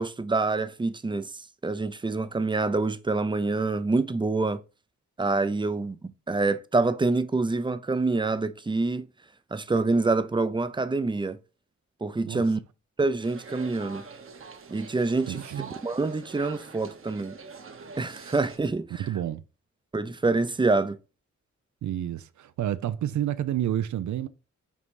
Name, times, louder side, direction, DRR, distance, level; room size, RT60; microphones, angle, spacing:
voice 1, 0.0-1.3 1.6-4.6 5.2-6.0 6.3-9.1 9.5-11.4 12.0-12.6 13.0-14.0 14.7-15.4 15.8-17.4 18.0-18.9 19.9-21.0, right 3 dB, 15° right, 0.5 m, -26 dB
sound 1, 13.2-18.6, right 5 dB, 45° right, 1.0 m, -44 dB
voice 2, 15.3-15.7 19.0-19.4 21.8-24.3, right 11 dB, 70° right, 0.5 m, -29 dB
5.5 x 4.0 x 4.7 m
wide cardioid pair, 110°, 30 cm